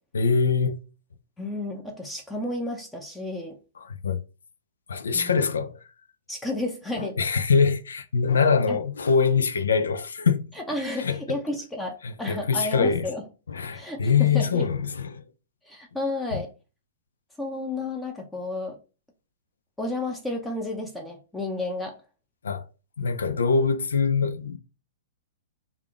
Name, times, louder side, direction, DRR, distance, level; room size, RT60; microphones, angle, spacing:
voice 1, 0.1-0.8 3.8-4.2 4.9-5.8 7.0-10.5 11.0-11.2 12.0-13.1 13.5-15.2 16.3-16.4 22.4-22.7 23.0-24.6, left 5 dB, 90° left, 0.4 m, -23 dB
voice 2, 1.4-3.5 5.1-5.6 6.3-7.2 8.7-8.8 10.6-13.2 13.7-14.7 15.7-16.5 17.4-18.8 19.8-21.9, left 2 dB, 10° left, 0.6 m, -32 dB
3.4 x 2.4 x 3.6 m
hypercardioid pair, 130°, 0 cm